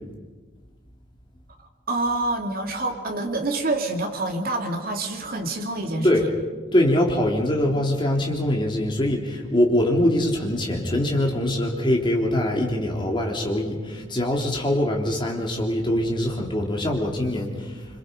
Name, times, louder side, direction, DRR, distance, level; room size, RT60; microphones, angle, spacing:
voice 1, 1.9-6.3, right 2 dB, 50° right, 3 dB, 2.7 m, -27 dB
voice 2, 6.7-17.8, left 1 dB, 25° left, 0 dB, 3.4 m, -23 dB
27.0 x 26.0 x 5.3 m, 1.3 s
head